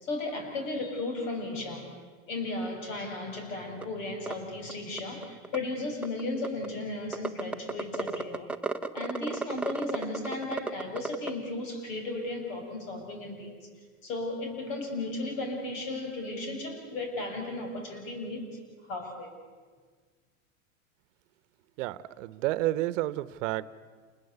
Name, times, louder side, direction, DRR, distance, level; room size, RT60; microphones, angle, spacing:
voice 1, 0.0-1.9 2.3-8.5 8.9-13.6 14.0-18.6 18.9-19.3, left 2 dB, 65° left, 4 dB, 7.5 m, -35 dB
sound 1, 3.8-3.9 4.3-4.4 4.7-4.8 5.0-5.6 6.0-6.7 7.1-11.3, right 3 dB, 5° right, 0.8 m, -32 dB
voice 2, 21.8-23.8, right 16 dB, 60° right, 16 dB, 1.0 m, -30 dB
28.5 x 21.0 x 8.1 m, 1.5 s
supercardioid pair, 125°, 41 cm